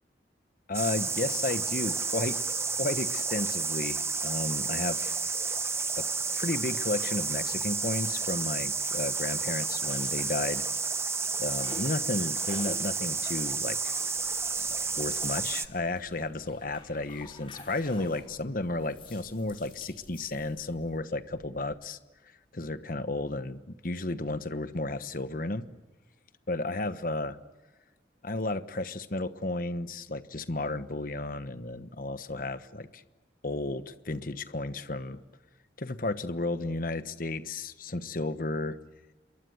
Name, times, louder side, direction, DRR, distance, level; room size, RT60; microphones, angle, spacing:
voice 1, 0.7-2.4 2.8-5.2 6.0-6.1 6.3-10.6 11.4-13.9 14.5-22.0 22.5-25.6 26.5-27.4 28.2-33.0 33.4-35.2 35.8-38.8, left 2 dB, 50° left, 11 dB, 1.2 m, -33 dB
sound 1, 0.7-15.7, right 4 dB, 15° right, 1.0 m, -31 dB
sound 2, 8.9-10.9 11.1-18.3 18.8-20.8, left 3 dB, 30° left, 6.3 m, -50 dB
sound 3, 14.2-21.8, equal, 35° right, 4.9 m, -58 dB
28.0 x 23.0 x 8.0 m, 1.2 s
head